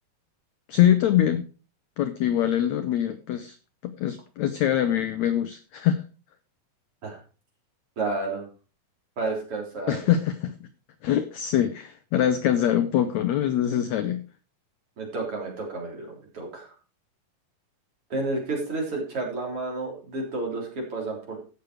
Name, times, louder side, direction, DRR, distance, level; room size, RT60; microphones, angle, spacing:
voice 1, 0.7-1.4 2.0-3.5 3.8-6.0 9.9-10.7 11.0-14.2, left 10 dB, 75° left, 10 dB, 1.7 m, -24 dB
voice 2, 8.0-8.5 9.2-10.1 15.0-16.7 18.1-21.4, right 3 dB, 40° right, 0 dB, 4.3 m, -31 dB
15.5 x 6.6 x 4.6 m, 0.35 s
omnidirectional pair, 4.2 m